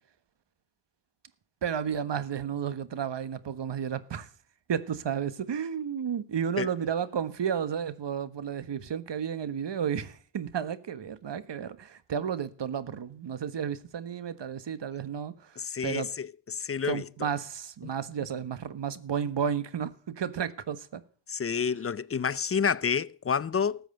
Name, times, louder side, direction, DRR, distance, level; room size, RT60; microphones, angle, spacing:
voice 1, 1.6-4.3 4.7-16.1 16.8-21.0, right 8 dB, 60° right, 1.3 m, -32 dB
voice 2, 15.6-17.3 21.3-23.8, left 6 dB, 30° left, 0.6 m, -29 dB
13.5 x 7.9 x 7.7 m
cardioid pair, 55°, 48 cm